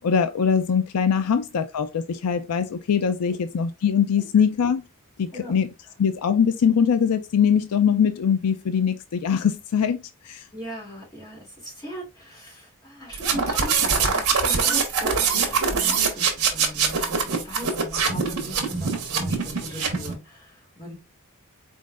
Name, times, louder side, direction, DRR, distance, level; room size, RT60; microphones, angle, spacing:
voice 1, 0.0-4.8 5.2-5.7 6.0-10.0 10.2-10.4, left 7 dB, 80° left, 0.4 m, -22 dB
voice 2, 10.5-20.9, equal, 20° left, 2.7 m, -39 dB
sound 1, 13.1-20.1, right 5 dB, 75° right, 1.3 m, -23 dB
4.2 x 3.9 x 2.4 m
head